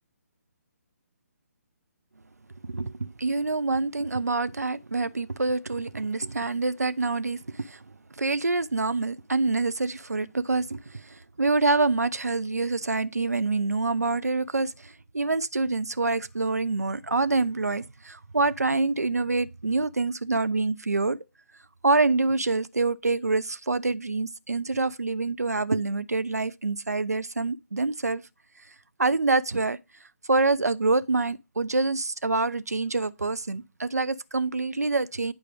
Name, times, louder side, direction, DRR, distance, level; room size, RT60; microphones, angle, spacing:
voice 1, 2.6-7.8 8.2-21.2 21.8-28.2 29.0-29.8 30.3-35.3, right 3 dB, 80° right, 0.5 m, -26 dB
9.0 x 4.8 x 5.1 m
figure-of-eight pair, 140°, 9 cm